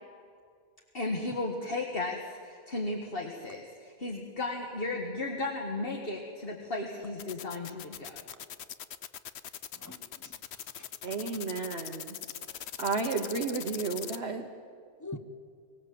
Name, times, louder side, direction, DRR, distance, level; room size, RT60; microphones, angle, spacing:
voice 1, 0.9-8.2, left 2 dB, 55° left, 1.9 m, -35 dB
sound 1, 7.2-14.2, left 9 dB, 70° left, 1.0 m, -41 dB
voice 2, 9.7-11.0 15.0-15.2, left 2 dB, 15° left, 1.2 m, -45 dB
voice 3, 11.0-12.2 12.8-14.5, right 4 dB, 65° right, 1.4 m, -32 dB
24.5 x 18.0 x 7.7 m
omnidirectional pair, 1.2 m